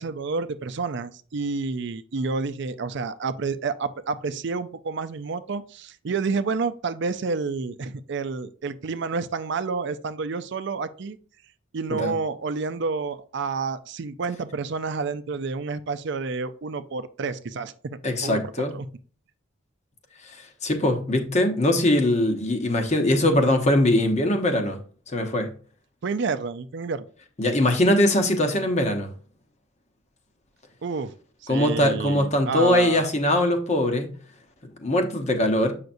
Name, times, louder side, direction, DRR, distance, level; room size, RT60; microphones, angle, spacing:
voice 1, 0.0-11.2 11.7-18.4 18.7-18.9 26.0-27.1 30.8-31.1 31.4-33.1, right 4 dB, 60° right, 0.5 m, -29 dB
voice 2, 18.0-18.7 20.2-24.8 25.1-25.5 27.4-29.1 31.5-34.1 34.8-35.7, left 1 dB, 35° left, 1.0 m, -22 dB
7.8 x 5.8 x 2.6 m
head